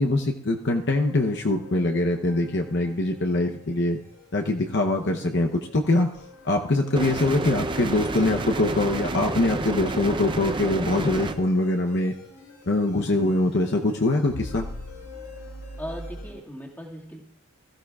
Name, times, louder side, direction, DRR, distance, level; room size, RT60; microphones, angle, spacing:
voice 1, 0.0-4.0 4.3-6.1 6.4-12.2 12.7-14.7, left 2 dB, 50° left, 3 dB, 0.8 m, -23 dB
sound 1, 0.9-16.3, left 2 dB, 90° left, 5.7 m, -44 dB
sound 2, 7.0-11.4, right 2 dB, 20° right, 0.5 m, -29 dB
voice 2, 15.8-17.2, equal, 10° left, -2 dB, 1.9 m, -39 dB
21.0 x 14.0 x 2.4 m, 0.72 s
head